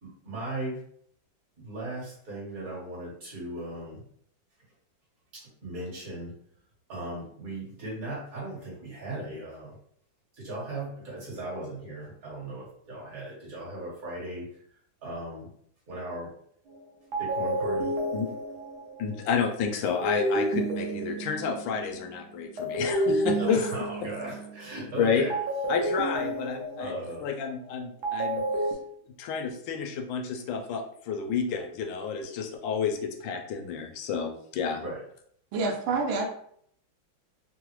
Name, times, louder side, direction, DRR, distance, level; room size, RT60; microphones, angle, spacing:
voice 1, 0.0-0.8 1.6-4.0 5.3-6.3 6.9-9.7 10.4-14.5 15.0-15.5 15.9-16.3 17.2-17.9 23.4-25.4 26.8-27.2 34.8-35.0, right 1 dB, 50° right, -6 dB, 1.7 m, -37 dB
sound 1, 16.7-16.8 17.1-22.1 22.6-24.8 25.3-28.7, right 1 dB, 65° right, 1.2 m, -30 dB
voice 2, 19.0-23.7 25.0-25.2 25.7-28.4 29.2-34.8, left 6 dB, 80° left, 3 dB, 1.3 m, -30 dB
voice 3, 35.5-36.2, right 3 dB, 85° right, 2 dB, 1.4 m, -27 dB
3.9 x 2.0 x 3.0 m, 0.65 s
omnidirectional pair, 2.1 m